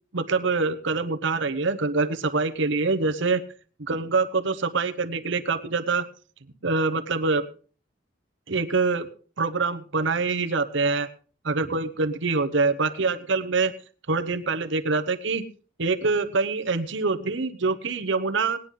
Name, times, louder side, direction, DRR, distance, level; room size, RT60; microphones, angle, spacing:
voice 1, 0.1-3.4 3.8-6.1 6.6-7.4 8.5-9.1 9.4-11.1 11.4-13.7 14.1-15.4 15.8-18.6, right 4 dB, 65° right, 9 dB, 1.0 m, -25 dB
19.0 x 10.0 x 3.8 m, 0.40 s
head